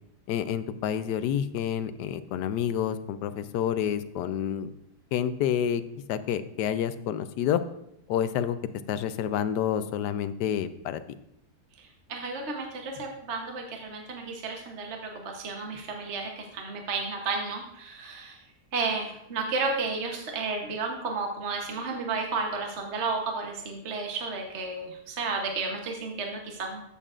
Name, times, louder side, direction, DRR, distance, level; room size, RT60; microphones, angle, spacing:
voice 1, 0.3-4.7 5.1-5.8 6.1-7.6 8.1-8.6 8.9-11.0, left 9 dB, 80° left, 12 dB, 1.2 m, -28 dB
voice 2, 11.8-18.4 18.7-26.8, right 4 dB, 45° right, 2 dB, 1.2 m, -32 dB
13.5 x 7.0 x 2.5 m, 0.78 s
omnidirectional pair, 1.8 m